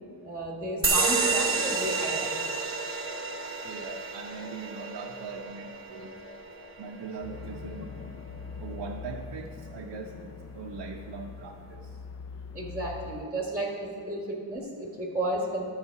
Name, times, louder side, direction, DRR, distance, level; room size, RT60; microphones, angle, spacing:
voice 1, 0.2-2.2 12.5-15.6, right 1 dB, 5° right, -2 dB, 1.5 m, -33 dB
sound 1, 0.8-7.9, right 4 dB, 25° right, 0.9 m, -30 dB
voice 2, 3.6-6.1 6.8-7.9 8.6-12.0, right 4 dB, 55° right, 0 dB, 0.7 m, -41 dB
sound 2, 7.2-13.3, left 5 dB, 35° left, 0.4 m, -42 dB
11.0 x 6.6 x 4.7 m, 2.5 s
cardioid pair, 85°, 49 cm